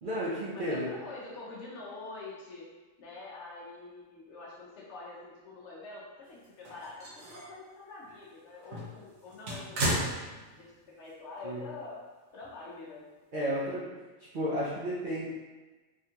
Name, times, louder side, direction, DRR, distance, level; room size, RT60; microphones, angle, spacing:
voice 1, 0.0-0.9 11.4-11.6 13.3-13.9 14.3-15.3, equal, 55° right, -8 dB, 0.5 m, -32 dB
voice 2, 0.5-2.7 3.0-10.1 10.6-10.7 11.0-12.0 12.3-13.1, left 3 dB, 65° left, -5 dB, 0.9 m, -45 dB
sound 1, 6.4-7.6 8.0-8.2 8.6-10.8 11.1-11.2 12.4-12.5, right 1 dB, 70° right, 1.2 m, -35 dB
3.6 x 2.3 x 2.7 m, 1.2 s
omnidirectional pair, 1.4 m